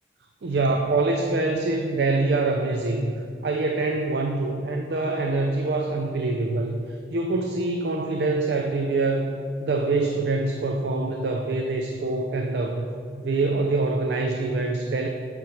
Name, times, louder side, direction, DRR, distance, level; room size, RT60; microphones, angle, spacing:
voice 1, 0.4-12.9 13.2-15.1, right 3 dB, 75° right, 3 dB, 0.4 m, -25 dB
8.5 x 3.1 x 4.9 m, 2.2 s
head